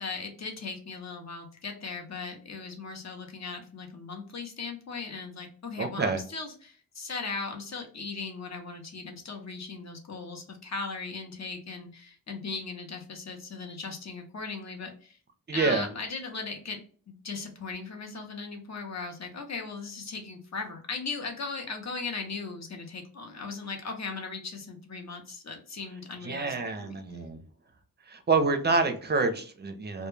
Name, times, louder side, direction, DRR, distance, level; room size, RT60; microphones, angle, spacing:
voice 1, 0.0-15.2 15.5-16.8 17.1-26.5 26.8-27.0, left 4 dB, 50° left, 3 dB, 0.7 m, -38 dB
voice 2, 5.8-6.2 15.5-15.9 26.2-27.4 28.1-30.1, right 4 dB, 30° right, 7 dB, 0.4 m, -27 dB
2.2 x 2.1 x 3.0 m, 0.43 s
wide cardioid pair, 120°, 35 cm